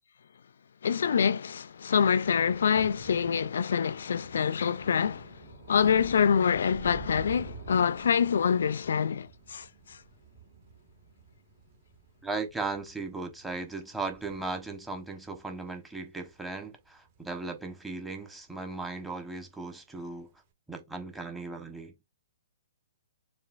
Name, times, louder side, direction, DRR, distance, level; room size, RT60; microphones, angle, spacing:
voice 1, 0.8-5.4 5.7-9.7, left 7 dB, 70° left, 0.3 m, -26 dB
Thunder / Rain, 1.6-18.2 18.6-19.0 19.3-19.5, right 4 dB, 40° right, 1.4 m, -49 dB
voice 2, 12.2-20.3 20.7-21.9, right 3 dB, 5° right, 1.1 m, -37 dB
6.7 x 2.8 x 2.5 m
hypercardioid pair, 130°, 0 cm